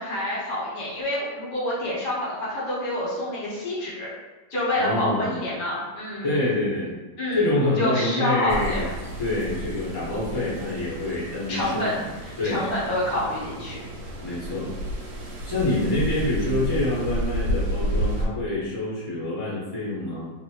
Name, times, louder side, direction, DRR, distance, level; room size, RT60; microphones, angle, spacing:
voice 1, 0.0-4.1 4.5-6.3 7.2-7.5 7.8-8.9 11.5-11.9 12.2-13.8, left 1 dB, 70° left, -7 dB, 1.5 m, -27 dB
voice 2, 4.8-5.4 6.2-6.9 7.3-8.9 9.2-12.1 12.4-12.7 14.2-14.7 15.4-20.3, left 2 dB, 15° left, -9 dB, 0.9 m, -26 dB
sound 1, 8.5-18.3, equal, 90° right, 1.3 m, -31 dB
2.9 x 2.7 x 2.9 m, 1.3 s
omnidirectional pair, 2.0 m